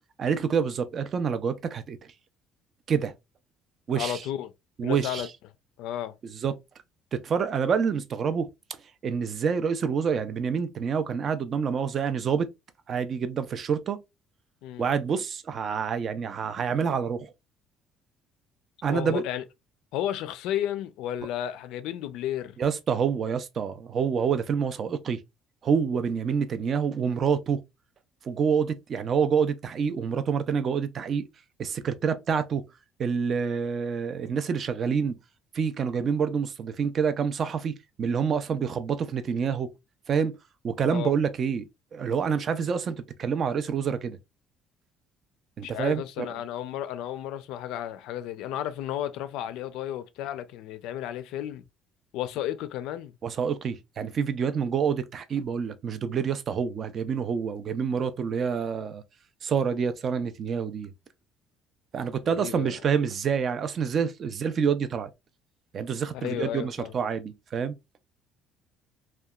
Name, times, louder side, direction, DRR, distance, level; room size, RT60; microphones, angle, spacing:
voice 1, 0.2-2.0 2.9-3.1 3.9-4.2 4.8-5.3 6.4-6.6 7.1-8.5 9.0-12.5 12.9-14.0 14.8-17.3 18.8-19.2 22.6-25.2 25.6-27.6 28.2-31.3 31.6-32.6 33.0-35.2 35.5-39.7 40.1-40.3 40.6-44.2 45.6-46.3 53.2-59.0 59.4-60.9 61.9-65.1 65.7-67.8, right 6 dB, 40° right, 0.3 m, -27 dB
voice 2, 3.9-4.5 4.8-5.3 5.8-6.2 14.6-14.9 18.9-19.4 19.9-22.6 40.9-41.1 45.6-51.6 52.1-53.2 62.3-62.8 66.1-66.9, left 11 dB, 80° left, 0.3 m, -33 dB
2.8 x 2.1 x 2.2 m
cardioid pair, 135°, 0 cm